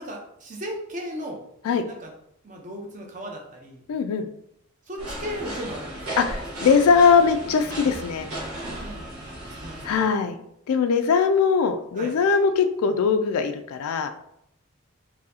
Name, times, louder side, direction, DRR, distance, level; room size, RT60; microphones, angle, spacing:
voice 1, 0.0-1.4 1.8-2.1 2.4-3.8 4.9-6.0 8.5-10.1 12.0-12.1, equal, 35° right, 1 dB, 0.6 m, -36 dB
voice 2, 3.9-4.3 6.2-8.3 9.8-10.3 10.7-14.1, left 5 dB, 85° left, 8 dB, 0.3 m, -21 dB
sound 1, 5.0-10.0, right 1 dB, 85° right, 1.3 m, -35 dB
4.0 x 2.7 x 2.7 m, 0.74 s
head